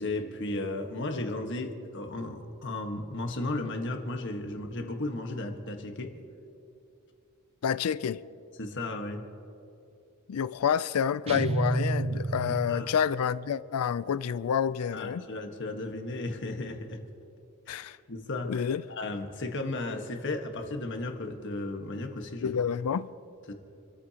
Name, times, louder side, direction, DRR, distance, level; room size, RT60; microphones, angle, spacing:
voice 1, 0.0-6.1 8.6-9.2 12.7-12.9 14.9-17.0 17.7-22.5 23.5-23.6, left 2 dB, 55° left, 1.5 m, -35 dB
voice 2, 7.6-8.2 10.3-15.3 17.7-18.0 18.4-18.8 22.4-23.1, left 7 dB, 80° left, 0.4 m, -28 dB
sound 1, 11.3-13.3, right 2 dB, 25° right, 0.4 m, -30 dB
28.0 x 13.5 x 2.9 m
head